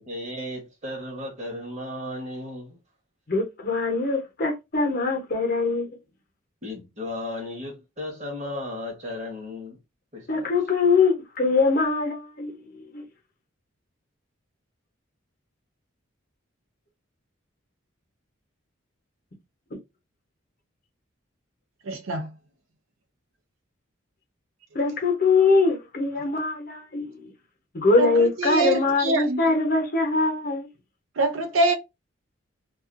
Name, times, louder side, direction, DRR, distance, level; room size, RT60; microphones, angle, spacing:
voice 1, 0.0-2.8 6.6-9.8 10.1-10.5, left 1 dB, 35° right, 0.9 m, -35 dB
voice 2, 3.3-5.9 10.3-13.0 24.7-27.3 27.7-30.7, left 3 dB, 45° left, 0.7 m, -23 dB
voice 3, 21.9-22.3 28.0-29.4 31.2-31.7, right 2 dB, 80° right, 0.5 m, -24 dB
2.4 x 2.3 x 2.4 m
head